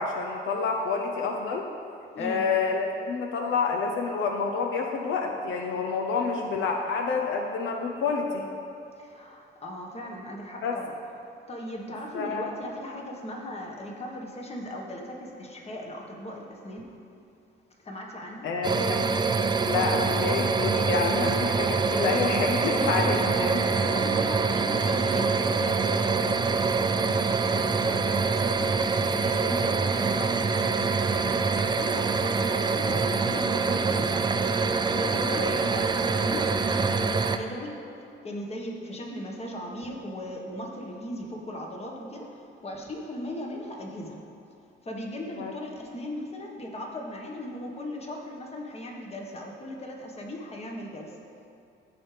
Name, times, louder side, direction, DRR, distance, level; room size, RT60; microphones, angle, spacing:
voice 1, 0.0-1.7 2.2-8.4 10.6-10.8 12.1-12.5 18.4-19.1 19.6-24.0 35.3-35.6 45.4-45.5, left 5 dB, 80° left, 1 dB, 0.6 m, -28 dB
voice 2, 2.1-2.4 9.0-11.0 11.5-16.9 17.8-18.5 21.0-21.3 22.7-23.1 23.8-28.7 29.1-34.3 34.8-37.7 38.2-44.2 44.8-51.2, left 1 dB, 30° left, 0 dB, 1.4 m, -38 dB
sound 1, 18.6-37.4, right 4 dB, 20° right, 0.4 m, -25 dB
14.0 x 4.9 x 3.3 m, 2.7 s
cardioid pair, 90°, 20 cm